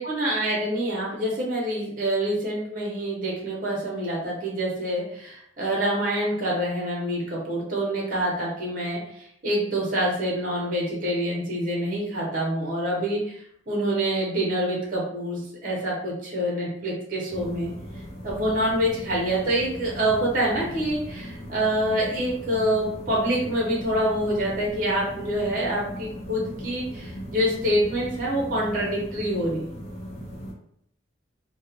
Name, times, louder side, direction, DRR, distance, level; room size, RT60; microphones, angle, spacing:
voice 1, 0.0-13.4 13.7-17.7 18.2-29.7, right 1 dB, 45° right, -3 dB, 0.7 m, -26 dB
sound 1, 17.3-30.5, equal, 35° left, 0.5 m, -38 dB
2.3 x 2.1 x 2.8 m, 0.70 s
head